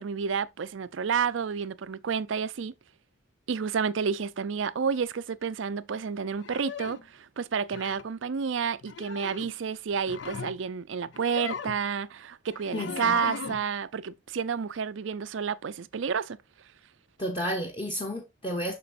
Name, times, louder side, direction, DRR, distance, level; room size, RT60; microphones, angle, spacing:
voice 1, 0.0-2.7 3.5-16.4, right 6 dB, 80° right, 0.5 m, -30 dB
sound 1, 6.4-7.0 7.7-8.1 8.8-9.5 9.9-10.6 11.1-11.8 12.5-13.7, left 6 dB, 70° left, 0.5 m, -38 dB
voice 2, 12.7-13.2 17.2-18.7, equal, 25° left, 1.0 m, -32 dB
6.9 x 6.1 x 2.5 m
head